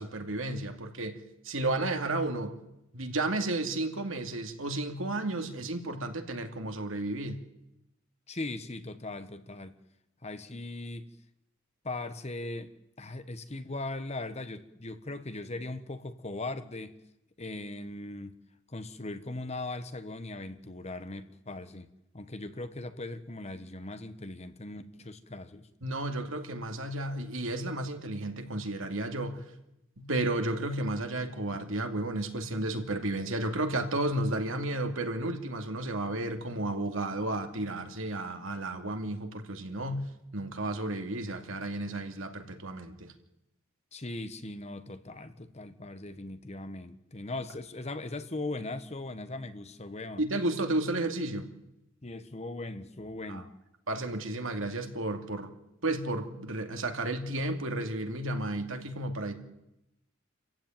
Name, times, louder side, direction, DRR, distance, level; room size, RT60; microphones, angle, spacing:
voice 1, 0.0-2.5 2.9-7.4 25.8-29.4 30.0-40.0 40.3-43.1 50.2-51.5 53.3-53.4 53.9-55.5 55.8-59.3, right 2 dB, 70° right, 5 dB, 2.5 m, -32 dB
voice 2, 8.3-9.8 10.2-11.1 11.8-17.0 17.4-18.4 18.7-21.9 22.1-25.7 43.9-50.2 52.0-53.5, left 2 dB, 30° left, 11 dB, 1.2 m, -39 dB
28.0 x 15.0 x 9.1 m, 0.89 s
head